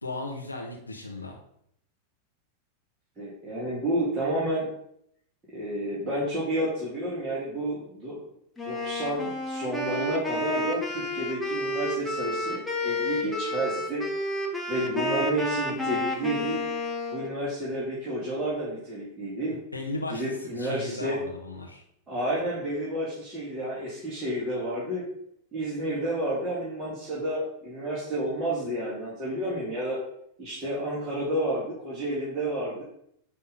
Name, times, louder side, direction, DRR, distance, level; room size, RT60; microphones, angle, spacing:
voice 1, 0.0-1.4 19.7-21.8, left 2 dB, 85° left, 0 dB, 1.1 m, -36 dB
voice 2, 3.2-4.7 5.5-8.3 8.6-14.0 14.7-16.6 17.1-19.5 20.1-21.2 22.1-25.0 25.5-30.0 30.4-32.8, right 1 dB, 15° right, -9 dB, 3.0 m, -30 dB
Wind instrument woodwind instrument, 8.6-17.3, left 1 dB, 10° left, 1.6 m, -30 dB
10.0 x 3.6 x 5.6 m, 0.72 s
figure-of-eight pair, 90°, 0 cm